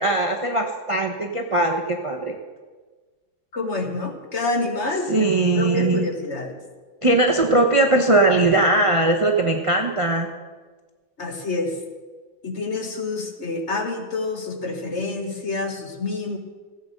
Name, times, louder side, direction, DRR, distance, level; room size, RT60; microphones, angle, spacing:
voice 1, 0.0-2.3 5.1-6.1 7.0-10.3, right 2 dB, 30° right, 3 dB, 0.5 m, -20 dB
voice 2, 3.5-5.3 5.5-6.6 11.2-11.8 12.4-16.4, left 3 dB, 40° left, 4 dB, 1.5 m, -27 dB
15.5 x 8.7 x 6.6 m, 1.4 s
omnidirectional pair, 2.1 m